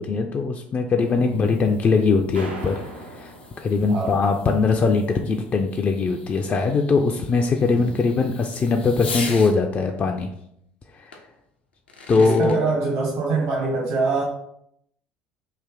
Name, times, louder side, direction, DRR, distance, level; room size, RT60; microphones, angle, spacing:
voice 1, 0.0-2.8 3.2-10.3 11.0-11.1 12.1-12.5, left 4 dB, 30° left, 3 dB, 0.4 m, -21 dB
Fireworks, 0.7-9.6 11.1-11.2 11.7-12.6, left 4 dB, 80° left, 0.6 m, -40 dB
voice 2, 1.2-1.5 3.9-4.2 7.7-8.0 12.2-14.2, right 3 dB, 55° right, -1 dB, 0.8 m, -24 dB
sound 1, 2.3-4.3, right 1 dB, 90° right, 0.7 m, -38 dB
3.3 x 2.6 x 3.7 m, 0.73 s
figure-of-eight pair, 60°, 6 cm